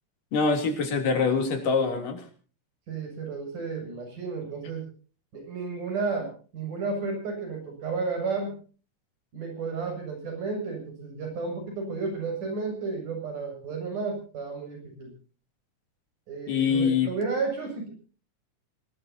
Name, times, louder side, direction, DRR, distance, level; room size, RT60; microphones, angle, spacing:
voice 1, 0.3-2.2 16.5-17.2, left 5 dB, 85° left, 4 dB, 5.0 m, -24 dB
voice 2, 2.9-4.9 5.3-8.6 9.3-15.1 16.3-17.9, right 4 dB, 75° right, 3 dB, 9.1 m, -32 dB
25.5 x 19.5 x 2.9 m, 0.40 s
omnidirectional pair, 3.7 m